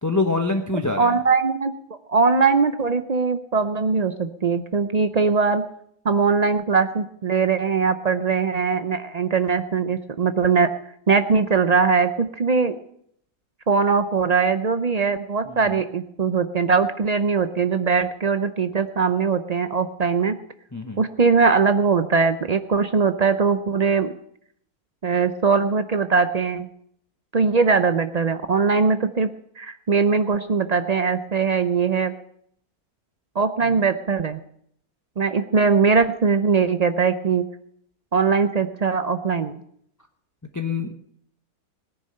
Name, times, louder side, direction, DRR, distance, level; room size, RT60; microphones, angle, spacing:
voice 1, 0.0-1.2 15.5-15.8 20.7-21.0 33.7-33.8 40.5-40.9, left 3 dB, 15° left, 4 dB, 0.7 m, -25 dB
voice 2, 0.7-1.7 2.1-5.6 6.0-10.7 11.1-12.7 13.7-20.3 21.0-24.1 25.0-26.7 27.3-29.3 29.6-32.1 33.4-34.4 35.2-37.4 38.1-39.6, right 5 dB, 85° right, 9 dB, 0.3 m, -21 dB
18.0 x 10.0 x 6.6 m, 0.68 s
omnidirectional pair, 1.7 m